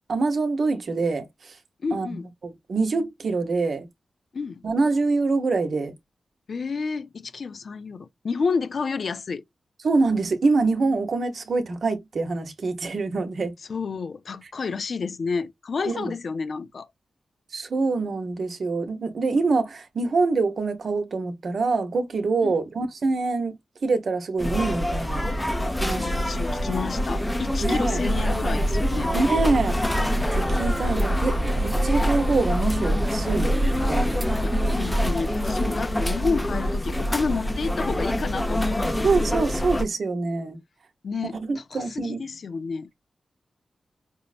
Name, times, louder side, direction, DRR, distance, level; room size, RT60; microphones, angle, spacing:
voice 1, 0.1-1.6 1.9-2.2 2.4-3.9 4.6-5.9 9.8-13.5 15.9-16.1 17.5-25.3 25.8-26.1 27.6-28.0 29.1-33.6 33.9-34.3 39.0-40.6 41.4-42.2, right 3 dB, 65° right, 0.8 m, -25 dB
voice 2, 1.8-2.3 4.3-4.6 6.5-9.4 13.7-16.9 22.4-22.5 25.9-29.1 30.8-31.0 34.4-39.2 41.0-42.9, left 5 dB, 65° left, 0.5 m, -30 dB
sound 1, 24.4-39.8, left 1 dB, 15° left, 0.6 m, -26 dB
sound 2, 28.1-35.1, right 1 dB, 10° right, 1.0 m, -27 dB
5.3 x 2.1 x 2.4 m
cardioid pair, 65°, 0 cm